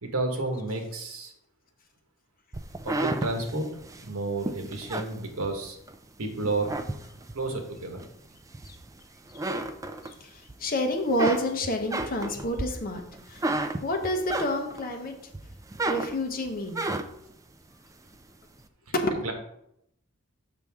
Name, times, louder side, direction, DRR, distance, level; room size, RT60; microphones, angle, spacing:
voice 1, 0.0-1.3 2.8-3.7 4.0-5.8 6.2-6.8 7.3-8.0 19.2-19.3, right 2 dB, 80° right, 4 dB, 1.3 m, -31 dB
sound 1, 2.5-6.0 6.4-7.5 8.0-9.0 9.3-10.5 10.9-14.9 15.3-17.3, right 2 dB, 15° right, 0.4 m, -32 dB
voice 2, 10.2-13.0 13.3-13.4 13.8-15.1 15.9-16.8 19.2-19.3, left 1 dB, 45° left, 4 dB, 1.0 m, -29 dB
6.7 x 6.0 x 3.5 m, 0.76 s
head